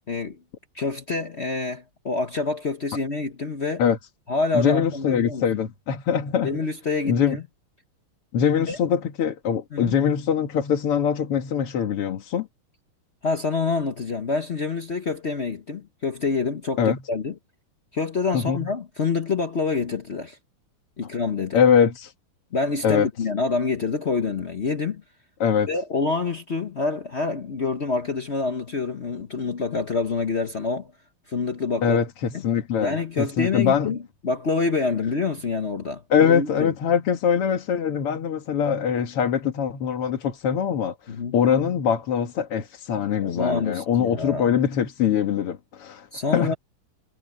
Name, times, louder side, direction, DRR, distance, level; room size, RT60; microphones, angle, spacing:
voice 1, 0.1-0.4 0.7-3.8 4.3-5.4 6.4-7.4 8.7-8.8 9.7-9.9 13.2-17.3 17.9-20.4 21.0-21.6 22.5-25.0 25.7-30.9 31.3-32.0 32.3-32.4 32.8-34.0 34.2-36.7 41.1-41.4 43.2-44.4 46.1-46.5, left 4 dB, 45° left, 0.9 m, -27 dB
voice 2, 4.5-6.6 7.1-7.4 8.3-12.5 16.8-17.0 18.3-18.7 21.5-22.1 22.8-23.1 25.4-25.7 31.8-33.9 36.1-46.1 46.3-46.6, left 7 dB, 90° left, 2.6 m, -23 dB
omnidirectional pair, 2.4 m